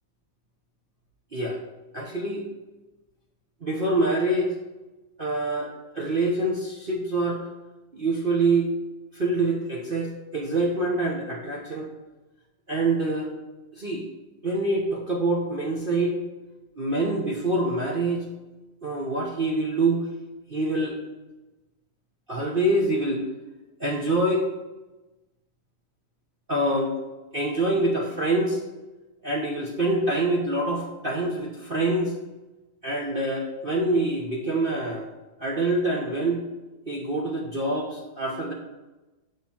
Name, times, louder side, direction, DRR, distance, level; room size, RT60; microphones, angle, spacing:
voice 1, 1.9-2.4 3.6-4.5 5.2-7.5 7.9-8.7 9.1-11.9 12.7-13.3 13.8-14.0 14.4-16.2 16.8-18.2 18.8-20.0 20.5-21.0 22.3-23.2 23.8-24.4 26.5-26.9 27.3-28.6 29.2-32.1 32.8-35.1 35.4-36.4 36.9-38.5, right 2 dB, 35° right, -3 dB, 1.0 m, -25 dB
6.7 x 6.6 x 4.4 m, 1.1 s
omnidirectional pair, 2.0 m